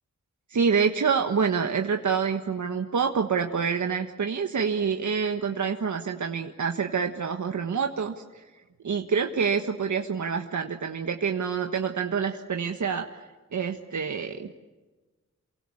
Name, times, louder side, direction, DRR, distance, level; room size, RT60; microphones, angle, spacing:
voice 1, 0.5-8.5 8.8-13.1 13.5-14.6, right 6 dB, 85° right, 4 dB, 1.5 m, -27 dB
28.5 x 23.5 x 8.6 m, 1.2 s
wide cardioid pair, 125°, 29 cm